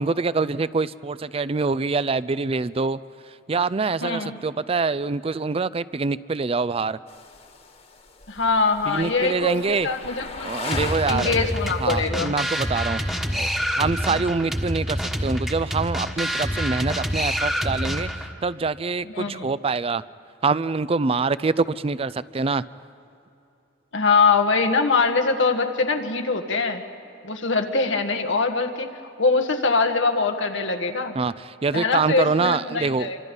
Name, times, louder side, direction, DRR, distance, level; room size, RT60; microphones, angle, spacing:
voice 1, 0.0-3.0 3.5-7.0 8.9-9.9 10.4-11.3 11.8-13.0 13.3-18.1 18.4-20.0 20.4-22.6 31.2-33.1, right 4 dB, 30° right, 17 dB, 0.4 m, -25 dB
voice 2, 4.0-4.4 8.3-10.5 11.1-12.3 14.1-14.2 19.1-19.5 23.9-26.8 27.2-28.9 29.2-31.2 31.7-33.2, left 4 dB, 90° left, 4 dB, 1.7 m, -23 dB
sound 1, 7.1-12.0, left 4 dB, 35° left, 1.6 m, -37 dB
sound 2, 10.7-18.3, equal, ahead, 1.4 m, -27 dB
27.0 x 25.5 x 5.5 m, 2.8 s
head